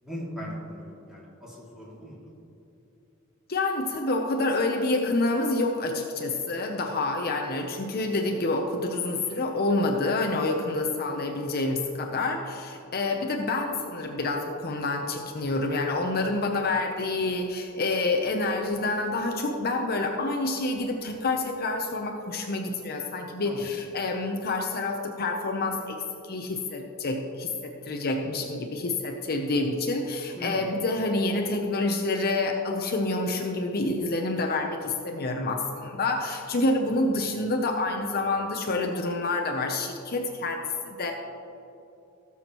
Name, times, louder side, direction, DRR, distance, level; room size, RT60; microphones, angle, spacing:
voice 1, 0.0-2.2 23.4-23.7 30.4-30.7, equal, 5° right, -6 dB, 2.5 m, -39 dB
voice 2, 3.5-41.1, left 2 dB, 45° left, 2 dB, 0.7 m, -28 dB
17.0 x 7.1 x 3.0 m, 2.9 s
head